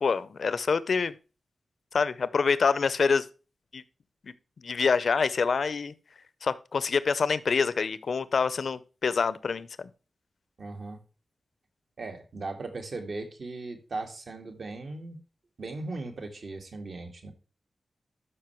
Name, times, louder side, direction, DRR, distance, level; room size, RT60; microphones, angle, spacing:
voice 1, 0.0-1.2 1.9-3.3 3.7-3.8 4.2-4.3 4.6-5.9 6.4-9.9, left 5 dB, 60° left, 0.6 m, -26 dB
voice 2, 10.6-11.0 12.0-15.2 15.6-17.3, right 3 dB, 55° right, 1.8 m, -38 dB
12.5 x 5.6 x 3.0 m
wide cardioid pair, 160°, 0 cm